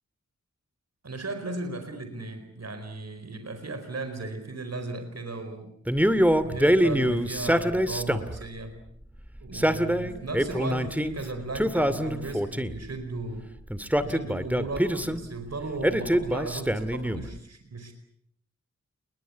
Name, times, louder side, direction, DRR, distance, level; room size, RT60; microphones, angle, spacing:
voice 1, 1.0-5.7 6.3-8.8 9.4-13.5 14.0-17.9, right 2 dB, 60° right, 7 dB, 4.6 m, -36 dB
Male speech man speaking, 5.9-8.4 9.4-11.1 11.5-12.8 13.7-15.2 15.8-17.3, equal, 5° right, 2.3 m, -25 dB
30.0 x 22.0 x 8.4 m, 0.69 s
wide cardioid pair, 60°, 29 cm